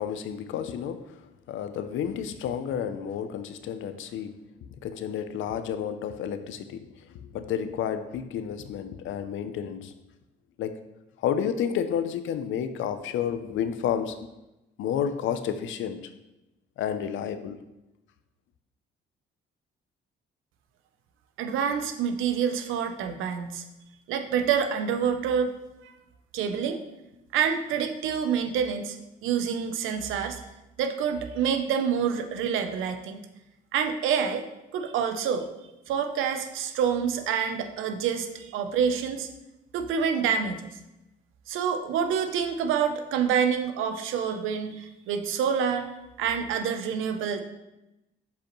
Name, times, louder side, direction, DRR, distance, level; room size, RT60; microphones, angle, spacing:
voice 1, 0.0-4.3 4.6-9.9 10.6-10.8 11.2-14.2 14.8-16.0 16.8-17.6, left 8 dB, 80° left, 10 dB, 0.5 m, -31 dB
voice 2, 21.4-23.6 24.1-25.5 25.8-25.9 26.3-26.8 27.3-29.0 29.2-30.4 30.8-33.2 33.7-34.4 34.7-35.5 35.9-39.3 39.7-40.8 41.5-45.9 46.2-47.4, right 7 dB, 90° right, 7 dB, 0.7 m, -27 dB
6.9 x 5.0 x 3.1 m, 0.95 s
cardioid pair, 90°, 20 cm